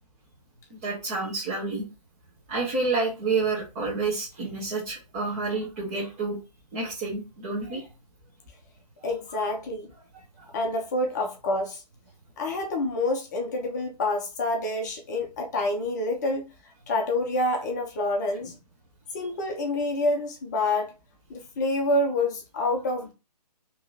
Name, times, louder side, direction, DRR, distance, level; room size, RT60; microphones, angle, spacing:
voice 1, 0.7-1.8 2.5-6.4 6.7-7.9 10.4-10.5, right 3 dB, 25° right, 1.1 m, -29 dB
voice 2, 9.0-9.9 10.5-11.8 12.4-16.5 16.9-18.6 19.1-20.9 21.3-23.1, left 2 dB, 25° left, 0.6 m, -27 dB
3.0 x 2.9 x 3.9 m
figure-of-eight pair, 135°, 21 cm